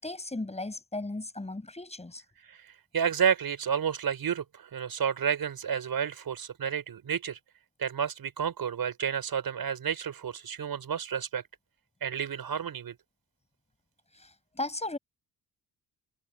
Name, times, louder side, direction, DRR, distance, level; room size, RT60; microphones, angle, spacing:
voice 1, 0.0-2.2 14.2-15.0, left 2 dB, 15° left, 7.3 m, -36 dB
voice 2, 2.9-7.4 7.8-11.4 12.0-12.9, right 8 dB, 55° right, 5.0 m, -30 dB
cardioid pair, 120°, 42 cm